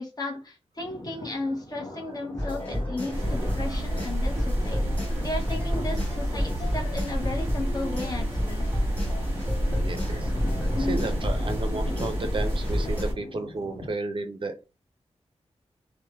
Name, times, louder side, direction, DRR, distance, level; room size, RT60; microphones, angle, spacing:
voice 1, 0.0-4.8 5.2-8.7 10.7-11.1, left 2 dB, 35° left, 1 dB, 0.8 m, -34 dB
Thunder, 0.8-13.9, left 2 dB, 70° left, 0.7 m, -41 dB
sound 1, 2.4-13.0, left 1 dB, 15° left, 1.2 m, -32 dB
sound 2, 3.1-13.1, equal, 20° right, 1.0 m, -29 dB
voice 2, 9.7-10.3 10.8-14.6, right 3 dB, 45° right, 7 dB, 0.4 m, -33 dB
3.1 x 2.1 x 2.2 m, 0.30 s
wide cardioid pair, 80°, 12 cm